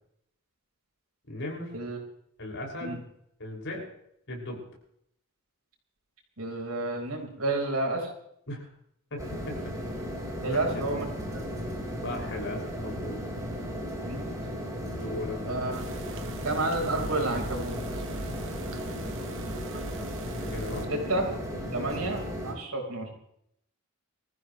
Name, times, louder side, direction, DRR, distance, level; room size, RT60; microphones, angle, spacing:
voice 1, 1.3-1.7 2.4-3.0 3.4-3.9 4.3-4.6 8.5-8.7 9.1-9.6 10.5-10.6 12.0-13.2 14.9-15.4 20.3-20.9 21.6-22.0, left 1 dB, 60° left, -1 dB, 5.8 m, -37 dB
voice 2, 6.4-8.1 10.4-11.1 14.1-14.3 15.5-15.8 16.4-17.8 20.9-21.3 21.7-23.1, right 2 dB, 80° right, 1 dB, 4.5 m, -30 dB
sound 1, 9.2-22.5, equal, 15° right, 4.5 m, -35 dB
sound 2, 15.7-20.9, right 2 dB, 60° right, 1.6 m, -40 dB
24.5 x 14.5 x 3.2 m, 0.72 s
head